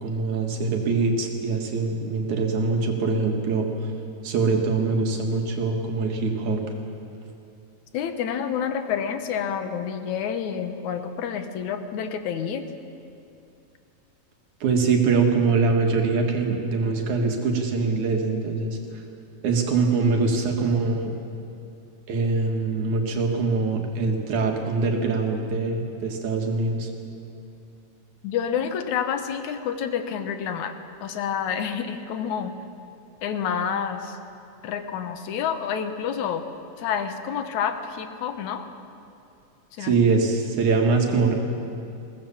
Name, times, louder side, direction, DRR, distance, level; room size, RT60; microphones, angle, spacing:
voice 1, 0.0-3.7 4.2-6.6 14.6-18.8 19.4-21.1 22.1-26.9 39.8-41.4, right 4 dB, 85° right, 2 dB, 3.4 m, -23 dB
voice 2, 7.9-12.7 28.2-30.7 31.0-32.5 33.2-34.2 34.6-36.4 36.8-38.7 39.7-40.0, left 8 dB, 85° left, 7 dB, 2.5 m, -28 dB
22.0 x 17.5 x 7.2 m, 2.6 s
omnidirectional pair, 3.3 m